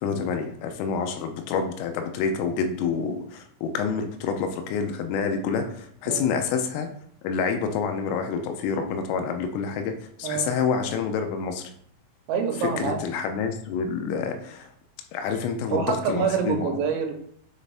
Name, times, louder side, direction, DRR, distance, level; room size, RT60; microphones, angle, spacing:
voice 1, 0.0-6.9 7.2-11.6 12.8-14.7 15.1-16.8, left 5 dB, 80° left, 6 dB, 3.2 m, -28 dB
voice 2, 12.3-13.0 15.7-17.1, right 6 dB, 85° right, 5 dB, 3.5 m, -26 dB
8.9 x 4.2 x 3.4 m, 0.66 s
omnidirectional pair, 5.9 m